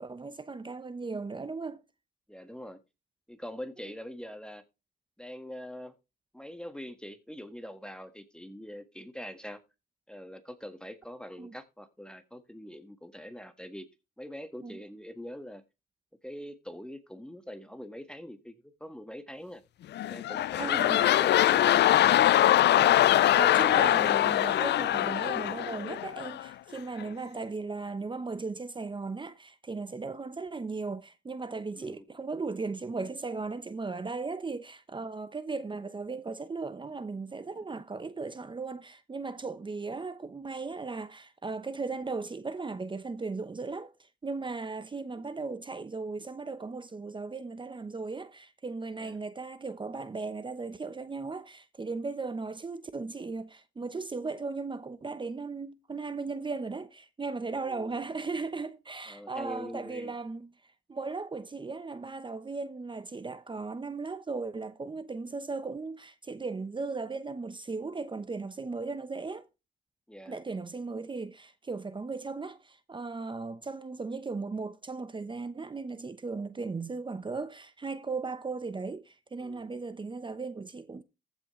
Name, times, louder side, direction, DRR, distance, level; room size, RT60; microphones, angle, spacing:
voice 1, 0.0-1.8 11.4-11.5 14.6-14.8 20.6-21.1 22.7-69.5 70.3-81.0, right 4 dB, 25° right, 0.9 m, -37 dB
voice 2, 2.3-2.8 3.3-4.6 5.2-5.9 6.3-9.6 10.1-13.9 14.2-15.6 16.2-19.6 20.0-21.8 31.8-32.0 49.0-49.2 57.6-58.0 59.1-60.1 70.1-70.4 79.4-79.6, equal, 5° left, 1.5 m, -43 dB
sound 1, 19.9-26.5 27.0-27.1, left 13 dB, 60° left, 0.5 m, -23 dB
15.0 x 6.2 x 3.1 m
cardioid pair, 90°, 20 cm